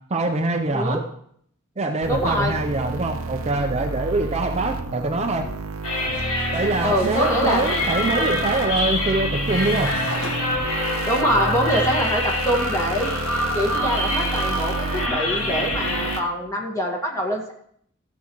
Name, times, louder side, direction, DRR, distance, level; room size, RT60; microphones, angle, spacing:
voice 1, 0.1-1.0 1.8-5.5 6.5-9.9, right 2 dB, 30° right, 4 dB, 0.6 m, -24 dB
sound 1, 2.0-16.2, right 3 dB, 70° right, 0.8 m, -30 dB
voice 2, 2.1-2.5 6.8-7.8 11.0-13.1 13.5-17.5, equal, 15° left, 0 dB, 1.7 m, -24 dB
sound 2, 5.8-16.2, left 1 dB, 70° left, 1.8 m, -26 dB
14.0 x 7.1 x 3.1 m, 0.66 s
head